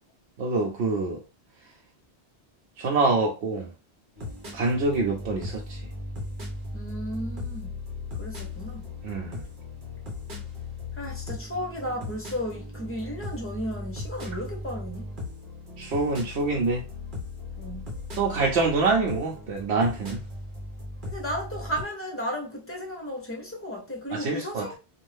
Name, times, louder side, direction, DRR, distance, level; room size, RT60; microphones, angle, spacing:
voice 1, 0.4-1.2 2.8-3.7 4.5-5.8 9.0-9.4 15.8-16.8 18.2-20.2 24.1-24.7, right 3 dB, 80° right, 0.9 m, -25 dB
Cyberpunk Beat, 4.2-21.8, left 2 dB, 55° right, 1.1 m, -37 dB
voice 2, 6.7-7.8 8.2-8.8 11.0-15.1 17.6-17.9 21.1-24.7, equal, 15° left, 0.8 m, -34 dB
2.6 x 2.4 x 3.2 m
omnidirectional pair, 1.1 m